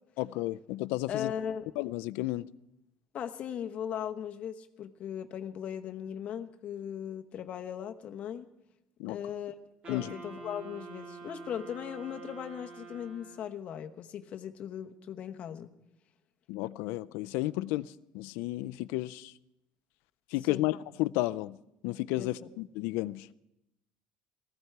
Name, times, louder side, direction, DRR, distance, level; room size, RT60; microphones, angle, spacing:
voice 1, 0.2-1.3 1.8-2.5 9.0-9.2 9.9-10.1 16.5-19.3 20.3-21.6 21.8-23.3, left 18 dB, 85° left, 0.5 m, -32 dB
voice 2, 1.1-1.7 3.1-8.5 9.1-9.6 9.9-15.7 20.5-20.7 22.1-22.3, left 9 dB, 35° left, 0.9 m, -38 dB
Wind instrument woodwind instrument, 9.8-13.7, right 4 dB, 30° right, 3.3 m, -47 dB
19.0 x 15.0 x 4.7 m
cardioid pair, 175°, 4 cm